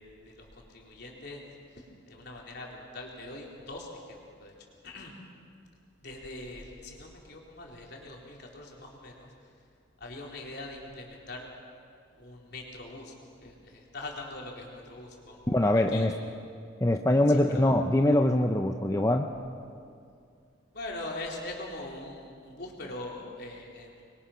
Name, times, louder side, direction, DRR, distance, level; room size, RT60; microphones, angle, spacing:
voice 1, 0.0-1.4 1.7-4.5 4.8-5.1 6.0-9.3 10.0-11.5 12.2-13.1 13.4-16.1 17.3-17.6 20.7-24.0, left 2 dB, 55° left, -2 dB, 3.9 m, -42 dB
voice 2, 15.5-16.1 16.8-19.3, left 1 dB, 15° left, 4 dB, 0.7 m, -23 dB
26.0 x 22.5 x 5.8 m, 2.3 s
head